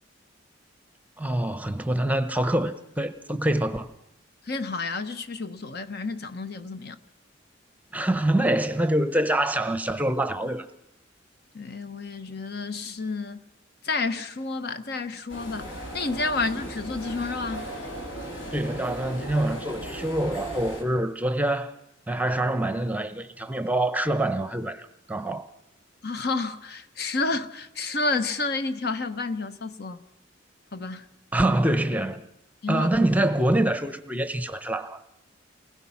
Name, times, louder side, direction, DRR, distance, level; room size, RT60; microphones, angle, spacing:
voice 1, 1.2-3.9 7.9-10.7 18.5-21.7 22.1-25.4 31.3-32.2 32.7-35.0, right 1 dB, 10° right, 0.8 m, -25 dB
voice 2, 4.5-7.0 11.5-13.4 13.8-17.7 26.0-30.0 30.7-31.1 32.6-33.0, left 3 dB, 55° left, 1.0 m, -30 dB
sound 1, 15.3-20.8, equal, 70° left, 4.0 m, -37 dB
29.0 x 20.0 x 5.8 m
head